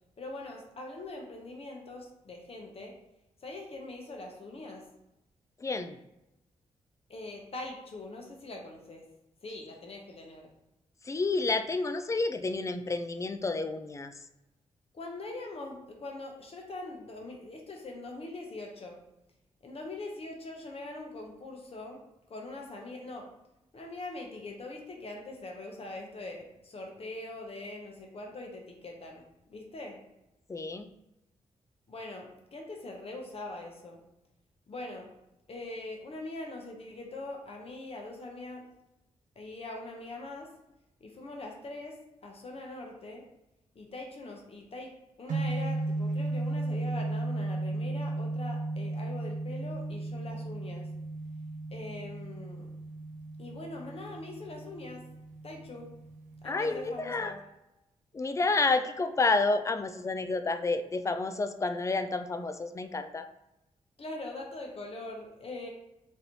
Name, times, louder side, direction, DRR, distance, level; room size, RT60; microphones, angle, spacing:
voice 1, 0.2-2.9 3.4-4.8 7.1-9.0 9.4-10.5 14.9-19.0 19.6-22.0 22.3-23.3 23.7-30.0 31.9-34.0 34.7-35.1 35.5-38.6 39.4-40.5 41.0-43.3 43.7-44.9 45.2-50.9 51.7-52.7 53.4-55.0 55.4-55.9 56.4-57.4 64.0-65.7, left 2 dB, 50° left, 1 dB, 0.8 m, -42 dB
voice 2, 5.6-6.0 11.0-14.1 30.5-30.9 56.4-57.3 58.1-63.3, left 3 dB, 25° left, 9 dB, 0.3 m, -30 dB
sound 1, 45.3-57.4, right 2 dB, 85° right, 0.5 m, -35 dB
3.1 x 2.7 x 2.8 m, 0.91 s
cardioid pair, 60°, 13 cm